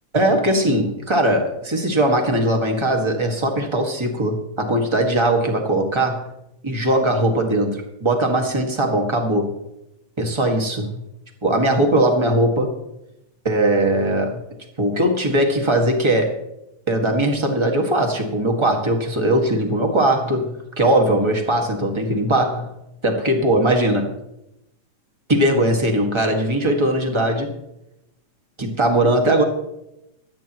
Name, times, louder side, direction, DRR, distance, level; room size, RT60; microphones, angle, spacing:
voice 1, 0.1-6.3 6.6-9.5 10.2-11.0 11.4-12.8 13.4-14.4 14.8-16.3 16.9-22.7 23.0-24.1 25.3-27.6 28.6-29.4, right 1 dB, 15° right, 2 dB, 1.0 m, -20 dB
25.0 x 8.8 x 3.1 m, 0.88 s
omnidirectional pair, 3.4 m